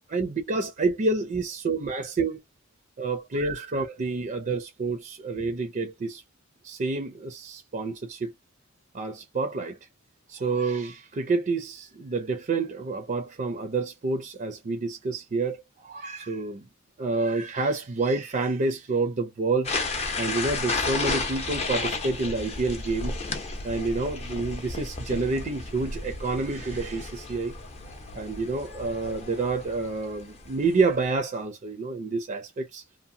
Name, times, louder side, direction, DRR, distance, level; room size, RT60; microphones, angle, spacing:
voice 1, 0.1-2.4 3.0-6.2 6.6-8.3 8.9-9.8 10.3-16.6 17.0-19.7 20.2-23.2 23.6-27.5 28.1-32.8, right 3 dB, 40° right, 0.5 m, -28 dB
sound 1, 19.6-31.1, left 3 dB, 30° left, 0.6 m, -33 dB
2.8 x 2.0 x 2.6 m
head